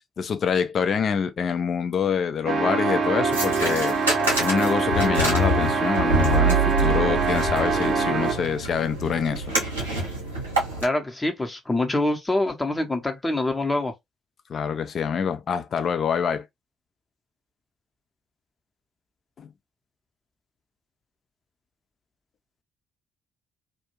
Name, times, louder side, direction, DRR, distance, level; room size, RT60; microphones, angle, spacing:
voice 1, 0.2-4.0 4.4-9.5 14.5-16.4 19.4-19.5, left 7 dB, 50° left, 0.4 m, -26 dB
sound 1, 2.5-8.5, right 4 dB, 50° right, 0.5 m, -24 dB
sound 2, 3.3-10.8, right 4 dB, 90° right, 0.8 m, -27 dB
sound 3, 3.6-3.7 4.9-8.5, left 9 dB, 75° left, 0.9 m, -28 dB
voice 2, 10.8-13.9, left 2 dB, 20° left, 0.7 m, -25 dB
2.4 x 2.1 x 2.9 m
figure-of-eight pair, 45°, 0 cm